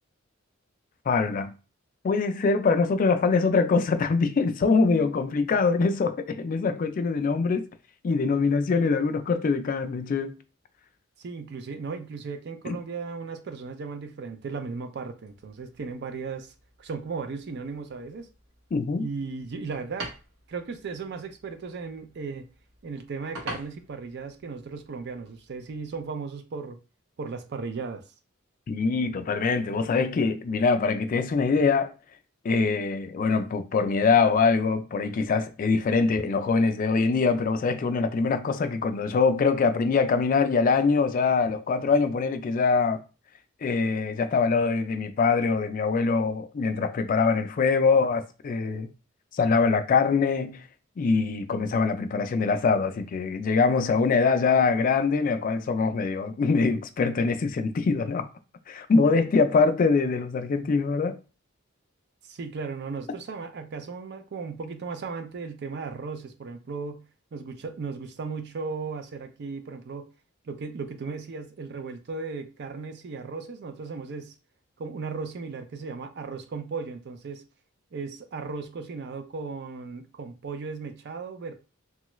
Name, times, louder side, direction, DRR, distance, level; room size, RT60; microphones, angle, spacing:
voice 1, 1.1-1.5 2.0-7.7 8.0-10.4 12.7-12.8 18.7-19.1 28.7-31.9 32.4-43.0 43.6-48.9 49.3-50.7 51.0-58.3 58.7-61.2, left 4 dB, 40° left, 0.3 m, -23 dB
voice 2, 11.2-16.5 16.8-18.3 19.0-20.1 20.5-22.4 22.8-26.8 27.2-28.0 62.2-67.0 67.3-70.1 70.5-74.3 74.8-77.4 77.9-81.5, right 4 dB, 55° right, 0.4 m, -36 dB
sound 1, 15.2-26.1, right 2 dB, 75° right, 0.9 m, -46 dB
3.0 x 2.3 x 3.0 m
head